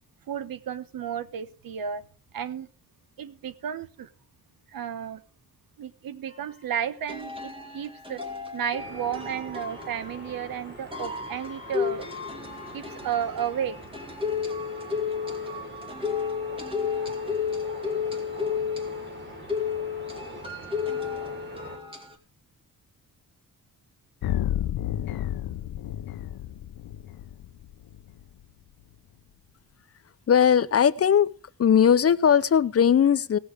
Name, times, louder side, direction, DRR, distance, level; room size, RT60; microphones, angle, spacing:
voice 1, 0.3-2.0 2.3-2.7 3.2-4.1 4.7-5.2 5.8-8.2 8.5-12.1 12.7-13.8, right 8 dB, 75° right, 13 dB, 1.2 m, -32 dB
sound 1, 6.3-6.4 7.1-22.1, left 6 dB, 15° right, 2.6 m, -33 dB
sound 2, 8.8-21.8, right 2 dB, 30° right, 3.5 m, -44 dB
sound 3, 24.2-28.2, left 12 dB, 90° left, 0.7 m, -31 dB
voice 2, 30.3-31.3 31.6-33.4, left 8 dB, 45° left, 16 dB, 0.6 m, -19 dB
18.0 x 7.1 x 5.0 m, 0.37 s
cardioid pair, 105°, 35 cm